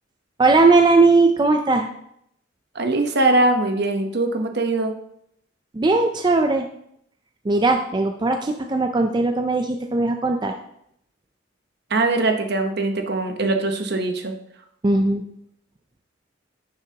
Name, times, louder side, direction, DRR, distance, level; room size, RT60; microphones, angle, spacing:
voice 1, 0.4-1.9 5.7-6.7 7.5-10.5 14.8-15.2, right 3 dB, 25° right, 5 dB, 0.4 m, -18 dB
voice 2, 2.7-4.9 11.9-14.3, right 2 dB, 55° right, 5 dB, 1.0 m, -21 dB
9.4 x 6.8 x 2.9 m, 0.73 s
head